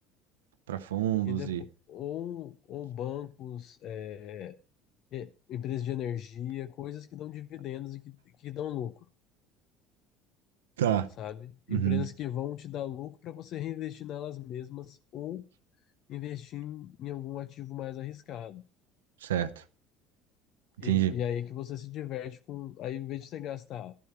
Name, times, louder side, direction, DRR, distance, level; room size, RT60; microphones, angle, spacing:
voice 1, 0.7-1.6 10.8-11.1 11.7-12.1 19.2-19.6 20.8-21.1, right 12 dB, 80° right, 0.6 m, -28 dB
voice 2, 1.9-4.6 5.1-9.1 11.2-15.4 16.1-18.6 20.8-23.9, left 11 dB, 55° left, 0.6 m, -37 dB
12.0 x 11.5 x 4.6 m
hypercardioid pair, 65°, 0 cm